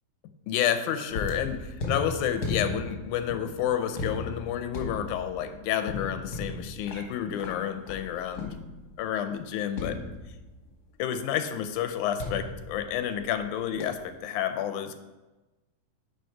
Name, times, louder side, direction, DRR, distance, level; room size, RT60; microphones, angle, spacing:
voice 1, 0.5-8.6 9.0-10.0 11.0-15.0, left 9 dB, 85° left, 9 dB, 2.0 m, -30 dB
sound 1, 1.1-9.0 9.8-10.8 12.2-13.5 13.8-14.1, left 2 dB, 50° left, 1.3 m, -37 dB
9.2 x 5.2 x 4.5 m, 1.1 s
omnidirectional pair, 3.5 m